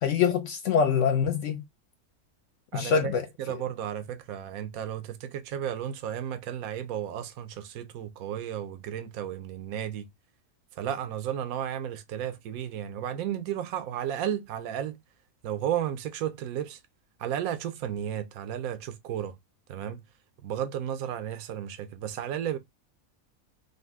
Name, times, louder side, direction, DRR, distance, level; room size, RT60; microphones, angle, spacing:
voice 1, 0.0-1.6 2.7-3.2, left 6 dB, 70° left, 0.8 m, -24 dB
voice 2, 2.7-10.1 10.7-15.0 15.4-16.8 17.2-19.4 19.7-20.0 20.4-22.6, right 10 dB, 80° right, 1.1 m, -33 dB
5.2 x 2.1 x 3.5 m
omnidirectional pair, 1.5 m